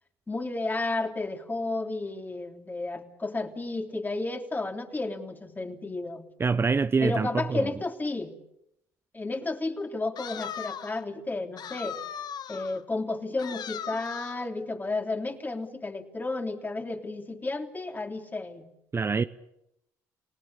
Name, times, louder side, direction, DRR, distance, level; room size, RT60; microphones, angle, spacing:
voice 1, 0.3-6.3 7.0-8.3 9.1-12.0 12.5-18.7, left 2 dB, 20° left, 3.4 m, -32 dB
voice 2, 6.4-7.7 18.9-19.2, right 5 dB, 30° right, 0.9 m, -25 dB
sound 1, 10.2-11.0 11.6-12.8 13.4-14.5, left 8 dB, 55° left, 1.3 m, -38 dB
29.5 x 18.5 x 8.5 m
hypercardioid pair, 65°, 9 cm